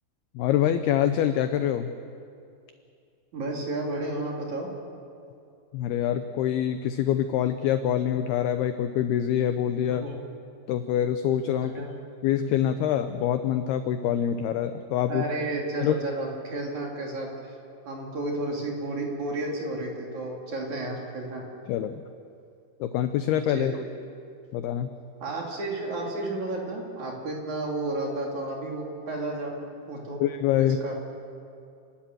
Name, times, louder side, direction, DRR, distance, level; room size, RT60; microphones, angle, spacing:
voice 1, 0.4-1.9 5.7-10.0 10.7-11.7 12.2-15.3 15.8-15.9 21.7-22.0 22.8-23.7 24.5-24.9 30.2-30.8, left 10 dB, 85° left, 9 dB, 2.2 m, -25 dB
voice 2, 3.3-4.7 9.9-10.1 11.6-11.9 15.1-17.5 17.9-21.4 23.5-23.8 25.2-29.5 29.8-30.2 30.6-30.9, right 2 dB, 45° right, -1 dB, 3.6 m, -32 dB
29.5 x 12.5 x 9.2 m, 2.5 s
omnidirectional pair, 5.4 m